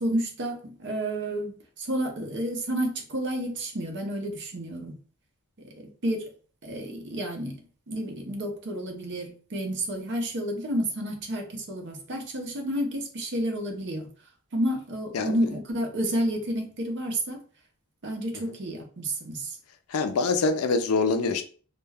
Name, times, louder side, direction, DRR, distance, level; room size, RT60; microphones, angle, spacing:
voice 1, 0.0-4.9 5.6-6.3 6.6-7.6 7.9-14.1 14.5-17.4 18.0-19.6, right 1 dB, 55° right, 0.6 m, -30 dB
voice 2, 15.1-15.5 19.9-21.4, left 4 dB, 65° left, 0.4 m, -25 dB
2.2 x 2.2 x 3.3 m
head